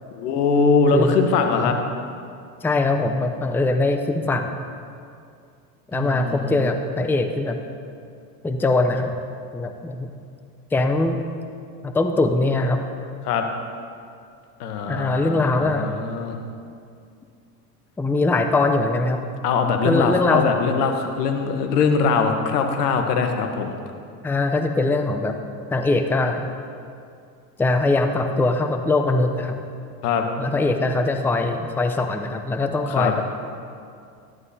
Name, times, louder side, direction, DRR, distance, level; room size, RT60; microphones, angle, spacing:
voice 1, 0.1-1.8 5.9-6.6 13.2-13.5 14.6-16.4 19.4-23.7 30.0-30.3 32.9-33.1, left 5 dB, 85° left, 5 dB, 1.2 m, -22 dB
voice 2, 2.6-4.5 5.9-7.6 8.4-9.2 9.5-10.1 10.7-11.2 11.8-12.8 14.9-15.9 18.0-19.2 19.8-20.5 24.2-25.4 25.7-26.5 27.6-29.6 30.4-33.1, left 2 dB, 5° left, 6 dB, 0.5 m, -22 dB
13.0 x 11.0 x 2.8 m, 2.4 s
supercardioid pair, 95°, 46 cm